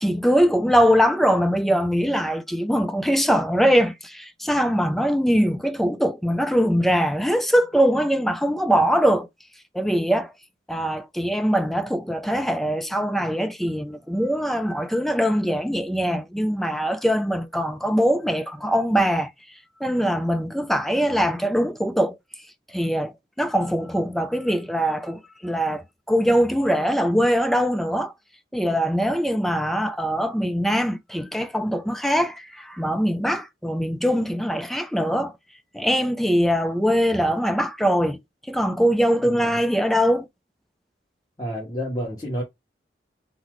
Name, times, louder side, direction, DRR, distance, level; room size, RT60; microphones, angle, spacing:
voice 1, 0.0-9.3 9.7-10.3 10.7-19.3 19.8-22.2 22.7-28.1 28.5-35.3 35.7-38.2 38.5-40.3, equal, ahead, 0.4 m, -22 dB
voice 2, 39.2-39.6 41.4-42.4, equal, 20° left, 1.1 m, -30 dB
4.0 x 2.1 x 4.5 m
head